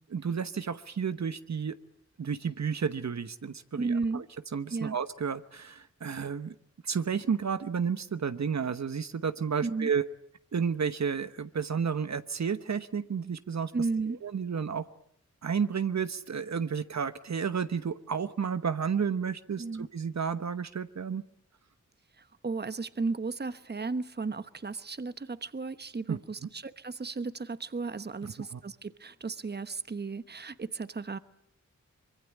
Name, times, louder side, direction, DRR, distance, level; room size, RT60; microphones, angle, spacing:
voice 1, 0.1-1.8 2.2-4.3 4.5-6.5 6.8-10.1 10.5-13.7 14.0-14.8 15.4-21.2 26.1-26.5 28.2-28.6, right 6 dB, 65° right, 1.1 m, -32 dB
voice 2, 3.7-4.2 4.7-5.0 9.6-9.9 13.7-14.2 19.6-19.9 22.4-31.2, right 4 dB, 35° right, 1.1 m, -34 dB
24.5 x 22.5 x 8.4 m
wide cardioid pair, 65°, 29 cm